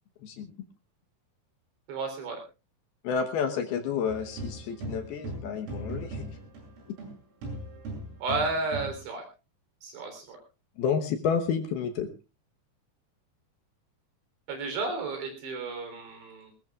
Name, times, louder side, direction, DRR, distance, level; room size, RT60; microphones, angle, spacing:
voice 1, 0.2-0.5 3.0-6.3 10.8-12.1, left 6 dB, 70° left, 7 dB, 2.5 m, -30 dB
voice 2, 1.9-2.4 8.2-9.3 9.8-10.4 14.5-16.5, right 3 dB, 60° right, 5 dB, 5.7 m, -32 dB
sound 1, 4.1-7.1 7.4-9.0, right 2 dB, 90° right, 10.5 m, -38 dB
20.0 x 20.0 x 2.4 m, 0.30 s
omnidirectional pair, 5.8 m